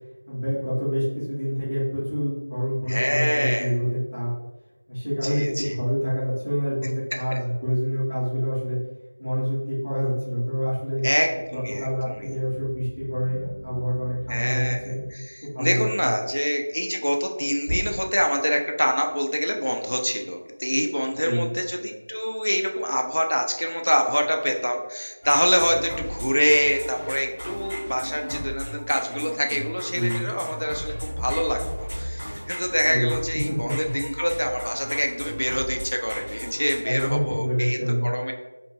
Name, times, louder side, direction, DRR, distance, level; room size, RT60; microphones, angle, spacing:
voice 1, 0.3-4.3 4.9-8.8 9.2-11.1 11.5-15.0 15.4-16.1 21.2-21.5 29.9-30.3 32.9-33.1 33.5-33.9 36.8-38.1, equal, 10° left, -13 dB, 0.7 m, -26 dB
voice 2, 2.9-3.7 5.2-5.8 7.3-7.4 11.0-12.3 14.3-14.8 15.1-31.6 32.0-38.3, equal, 80° left, 3 dB, 0.4 m, -25 dB
sound 1, 9.3-15.1 17.6-18.4, equal, 40° left, 0.9 m, -38 dB
sound 2, 25.2-37.1, equal, 20° right, 1.0 m, -35 dB
2.6 x 2.5 x 2.8 m, 1.1 s
figure-of-eight pair, 180°, 0 cm